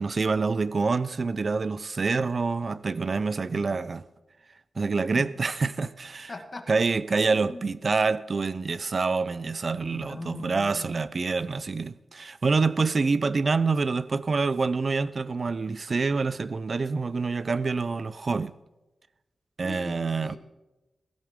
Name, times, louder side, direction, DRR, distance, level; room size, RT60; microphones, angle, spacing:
voice 1, 0.0-4.1 4.8-6.3 6.7-18.5 19.6-20.4, right 4 dB, 45° right, 0.4 m, -26 dB
voice 2, 6.3-6.7 7.2-7.6 9.9-11.0 19.6-20.4, left 3 dB, 35° left, 1.5 m, -40 dB
16.5 x 16.0 x 3.7 m
wide cardioid pair, 145°, 0 cm